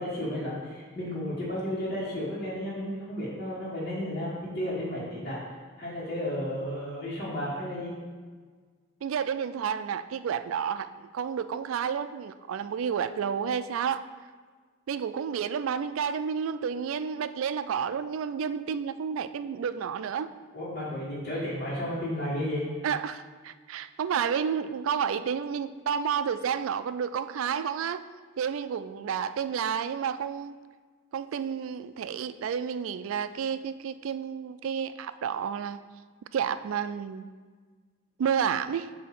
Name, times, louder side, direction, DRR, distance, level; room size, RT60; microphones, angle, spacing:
voice 1, 0.0-5.4 5.8-7.9 20.5-22.6, left 1 dB, 40° left, -11 dB, 1.5 m, -33 dB
voice 2, 9.0-10.9 11.1-14.0 14.9-20.3 22.8-28.0 28.4-30.5 31.1-35.8 36.3-37.3 38.2-38.9, right 7 dB, 80° right, 13 dB, 0.3 m, -30 dB
7.9 x 2.8 x 5.9 m, 1.5 s
head